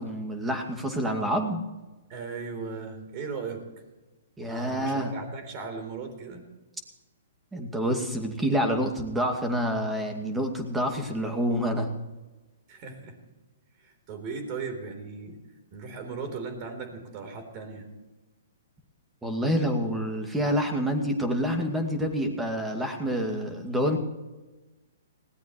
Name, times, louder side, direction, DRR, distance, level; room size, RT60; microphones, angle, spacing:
voice 1, 0.0-1.6 4.4-5.1 7.5-11.9 19.2-24.0, equal, 10° right, 5 dB, 2.3 m, -27 dB
voice 2, 2.1-3.6 4.4-6.5 12.7-13.2 13.8-15.4 15.7-17.9, right 4 dB, 40° right, 6 dB, 3.9 m, -37 dB
20.0 x 17.5 x 3.2 m, 1.1 s
hypercardioid pair, 125°, 0 cm